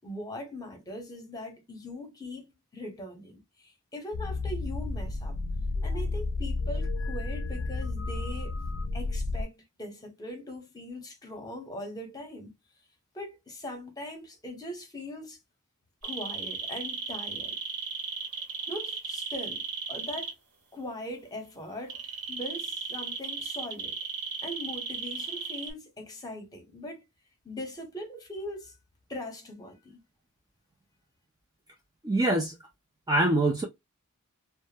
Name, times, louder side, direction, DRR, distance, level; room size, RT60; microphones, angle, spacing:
voice 1, 0.0-5.4 5.8-8.6 8.9-12.5 13.1-15.4 16.0-17.6 18.7-20.3 20.7-22.0 22.3-23.9 24.4-27.0 27.4-28.8 29.1-30.0, left 1 dB, 15° left, 0.9 m, -40 dB
sound 1, 4.1-9.4, left 3 dB, 75° left, 0.5 m, -31 dB
sound 2, 16.0-20.3 21.9-25.7, right 4 dB, 90° right, 1.0 m, -35 dB
voice 2, 32.0-32.6 33.1-33.6, right 1 dB, 15° right, 0.4 m, -24 dB
2.1 x 2.0 x 3.2 m
head